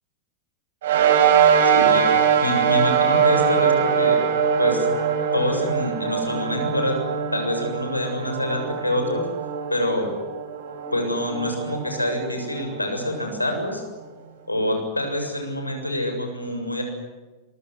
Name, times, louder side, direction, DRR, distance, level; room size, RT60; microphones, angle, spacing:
sound 1, 0.8-13.6, right 7 dB, 60° right, 5.0 m, -22 dB
voice 1, 1.6-4.2 4.6-4.9 5.3-7.0 7.3-9.3 9.7-10.1 10.9-13.8 14.5-16.8, left 1 dB, 85° left, 4 dB, 7.6 m, -26 dB
27.0 x 25.0 x 8.0 m, 1.3 s
figure-of-eight pair, 90°, 0 cm